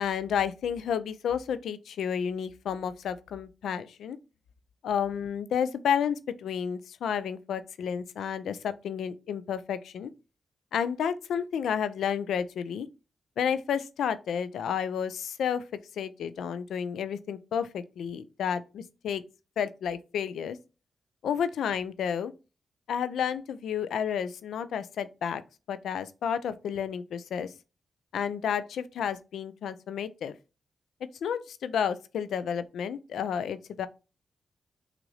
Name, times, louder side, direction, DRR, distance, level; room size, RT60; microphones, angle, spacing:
voice 1, 0.0-4.2 4.8-10.1 10.7-12.9 13.4-15.6 16.0-19.2 19.6-20.6 21.2-22.3 22.9-25.4 25.7-27.5 28.1-30.4 31.2-33.9, left 8 dB, 85° left, 0.4 m, -31 dB
6.1 x 2.5 x 3.2 m
supercardioid pair, 50°, 0 cm